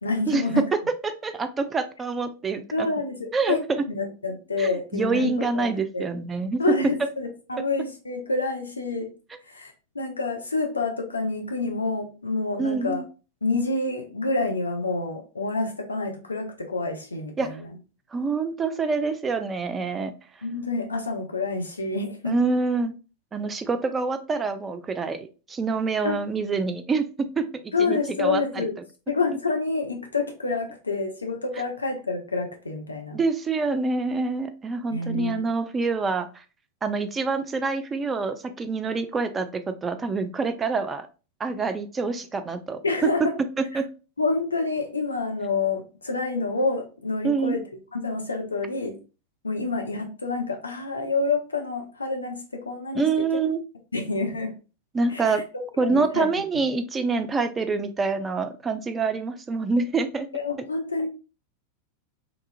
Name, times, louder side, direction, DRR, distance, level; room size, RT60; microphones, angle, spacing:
voice 1, 0.0-0.6 2.7-5.7 5.9-6.1 6.6-9.1 9.5-13.0 13.4-17.7 20.4-22.4 26.0-26.2 27.7-28.7 29.1-33.2 34.9-35.4 42.8-43.3 43.7-43.8 44.2-47.6 47.9-49.0 49.4-53.1 53.9-54.5 55.1-55.4 55.8-56.3 60.3-61.1, left 3 dB, 75° left, 3 dB, 0.5 m, -28 dB
voice 2, 0.7-2.9 3.3-3.6 4.6-6.6 12.6-13.0 17.4-17.5 18.1-20.1 22.3-22.9 23.3-28.7 33.1-36.4 36.8-41.1 41.4-43.1 43.6-43.9 47.2-47.6 53.0-53.6 54.9-55.4 55.8-60.3, right 4 dB, 20° right, 9 dB, 0.3 m, -26 dB
2.9 x 2.4 x 2.5 m, 0.34 s
figure-of-eight pair, 90°, 0 cm